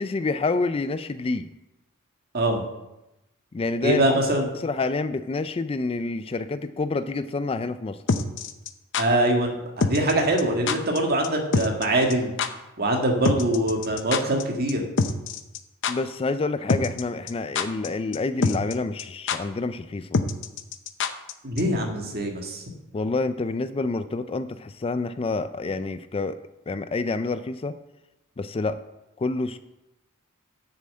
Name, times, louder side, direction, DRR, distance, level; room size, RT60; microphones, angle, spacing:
voice 1, 0.0-1.5 3.5-4.2 4.5-8.0 15.9-20.2 22.9-26.4 26.7-27.7 28.4-28.8 29.2-29.6, left 3 dB, 25° left, 12 dB, 0.3 m, -28 dB
voice 2, 3.8-4.5 9.0-12.3 12.8-14.8 21.4-22.6, right 1 dB, 45° right, 2 dB, 1.8 m, -23 dB
sound 1, 8.1-9.0 9.8-10.1 10.4-10.5 10.7-11.0 11.2-11.3 11.5-11.8 12.1-12.2 12.4-12.5 13.2-14.4 14.7-14.8 15.0-15.6 15.8-15.9 16.7-17.0 17.3-17.9 18.1-18.2 18.4-18.7 19.0-19.1 19.3-19.4 20.1-21.3 21.6-21.7, left 4 dB, 60° left, 0.7 m, -24 dB
7.5 x 7.1 x 7.6 m, 0.95 s
head